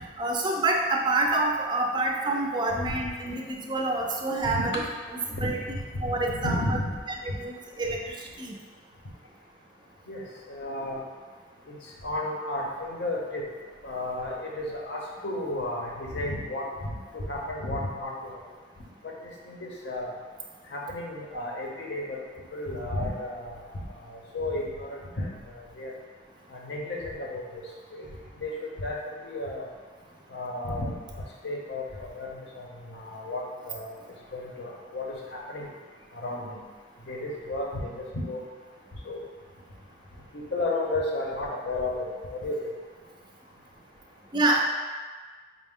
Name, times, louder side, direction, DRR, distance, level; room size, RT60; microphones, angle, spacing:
voice 1, 0.2-4.8 5.3-5.6 6.0-6.8 7.2-8.6 44.3-44.6, right 2 dB, 25° right, 1 dB, 0.3 m, -27 dB
voice 2, 5.9-6.9 7.3-7.4 10.1-11.0 11.7-11.8 12.0-13.4 13.8-18.4 19.0-19.1 19.5-20.1 20.7-22.2 22.5-23.7 24.0-25.9 26.5-27.4 27.9-28.1 28.4-29.7 30.3-30.9 31.4-34.0 34.3-35.7 36.1-36.5 37.1-38.4 39.0-39.2 40.3-42.6, left 1 dB, 70° left, -2 dB, 0.7 m, -33 dB
4.9 x 2.0 x 3.6 m, 1.5 s
head